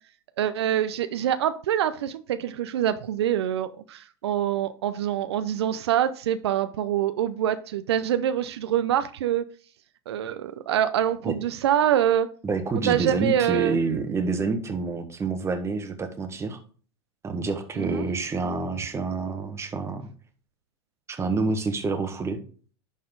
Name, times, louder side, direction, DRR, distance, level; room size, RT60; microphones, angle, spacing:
voice 1, 0.4-9.5 10.1-12.3 12.9-13.8 17.8-18.1, right 10 dB, 75° right, 0.6 m, -25 dB
voice 2, 12.4-16.6 17.2-20.1 21.1-22.4, right 4 dB, 20° right, 1.5 m, -28 dB
11.0 x 4.2 x 3.9 m
hypercardioid pair, 95°, 14 cm